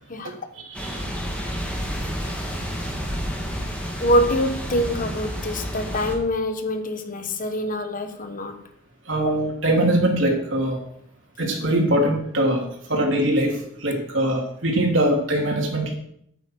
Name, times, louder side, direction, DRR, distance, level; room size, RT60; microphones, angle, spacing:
sound 1, 0.7-6.2, equal, 5° left, 2.7 m, -30 dB
voice 1, 0.7-1.0 9.1-10.8 11.4-13.6 13.8-15.9, right 1 dB, 65° right, 0 dB, 3.2 m, -22 dB
voice 2, 4.0-8.6, equal, 45° left, 7 dB, 1.3 m, -25 dB
13.5 x 9.2 x 4.7 m, 0.70 s
head